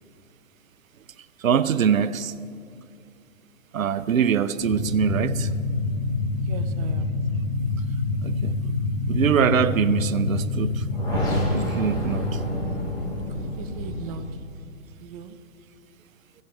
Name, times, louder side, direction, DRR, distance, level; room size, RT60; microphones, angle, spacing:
voice 1, 1.4-2.3 3.7-5.5 8.2-8.6 9.1-12.4, right 8 dB, 85° right, 0.8 m, -24 dB
sound 1, 4.6-14.3, left 2 dB, 10° left, 4.2 m, -26 dB
voice 2, 6.3-7.1 13.4-14.3 15.0-15.4, right 8 dB, 30° right, 0.7 m, -39 dB
17.0 x 16.0 x 3.4 m
hypercardioid pair, 145°, 39 cm